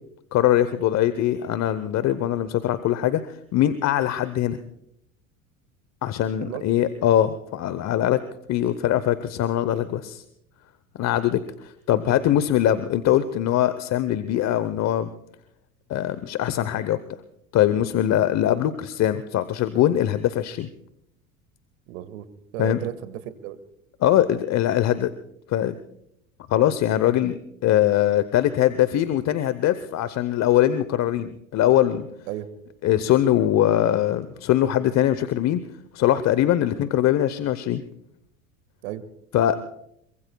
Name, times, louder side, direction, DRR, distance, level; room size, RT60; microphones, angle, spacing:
voice 1, 0.3-3.2 3.5-4.6 6.0-8.2 8.5-10.2 11.0-11.4 11.9-15.1 15.9-17.0 17.5-20.7 22.6-22.8 24.0-25.1 25.5-25.7 26.5-32.1 32.8-35.6 35.9-37.8 39.3-39.6, left 12 dB, 40° left, 13 dB, 0.9 m, -22 dB
voice 2, 21.9-22.3 22.5-23.6 32.3-32.5 38.8-39.0, right 12 dB, 75° right, 12 dB, 1.8 m, -34 dB
26.0 x 24.0 x 2.3 m, 0.79 s
hypercardioid pair, 85°, 40 cm